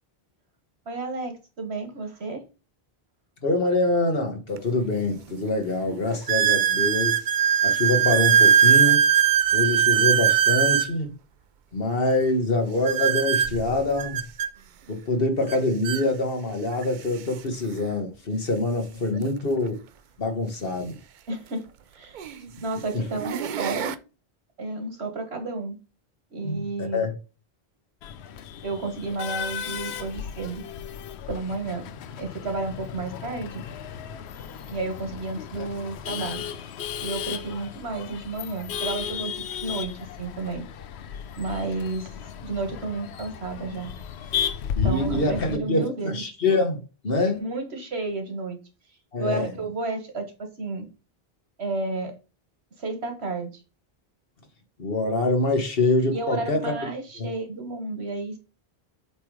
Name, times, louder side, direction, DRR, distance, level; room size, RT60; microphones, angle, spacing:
voice 1, 0.9-2.4 21.3-21.6 21.9-22.2 22.6-24.0 24.6-25.8 26.3-27.0 28.6-30.6 31.3-31.9 32.2-33.6 34.7-36.4 37.0-39.9 40.2-40.6 41.4-42.1 42.4-43.9 44.8-46.2 47.4-48.6 49.2-50.9 51.6-52.1 52.8-53.5 56.1-58.4, right 3 dB, 85° right, 1.9 m, -31 dB
voice 2, 3.4-7.2 7.6-9.0 9.5-11.1 11.7-14.2 14.9-19.8 20.2-21.0 22.9-23.0 26.4-27.1 44.7-47.4 49.1-49.5 54.8-56.7 57.2-57.3, left 2 dB, 65° left, 1.7 m, -25 dB
sound 1, 4.6-4.7 5.3-5.4 6.3-10.9 12.8-14.5 15.5-15.6 15.8-16.0 16.8-16.9 19.1-19.2 21.3-21.4 22.1-22.5 23.0-23.9, right 8 dB, 60° right, 0.6 m, -21 dB
Male speech man speaking / Laughter / Chatter, 28.0-45.6, left 8 dB, 85° left, 0.9 m, -34 dB
8.0 x 3.3 x 4.9 m
omnidirectional pair, 1.1 m